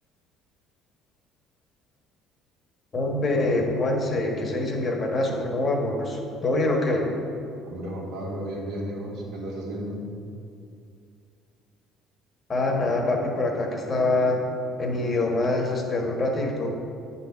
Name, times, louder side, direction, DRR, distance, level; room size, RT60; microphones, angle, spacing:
voice 1, 2.9-7.0 12.5-14.4 14.8-16.7, left 2 dB, 35° left, 1 dB, 1.4 m, -25 dB
voice 2, 7.6-10.0, right 1 dB, 75° right, -3 dB, 1.8 m, -33 dB
8.6 x 4.1 x 5.9 m, 2.5 s
cardioid pair, 100°, 0 cm